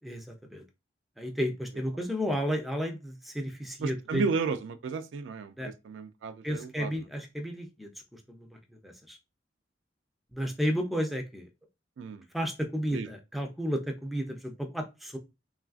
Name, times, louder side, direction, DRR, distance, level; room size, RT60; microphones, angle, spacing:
voice 1, 1.2-4.2 5.6-5.7 6.4-8.4 8.8-9.2 10.3-11.5 12.3-15.2, equal, ahead, 0.4 m, -32 dB
voice 2, 3.8-6.9 12.0-12.2 12.9-13.1, right 4 dB, 80° right, 0.3 m, -33 dB
3.1 x 2.4 x 2.4 m
head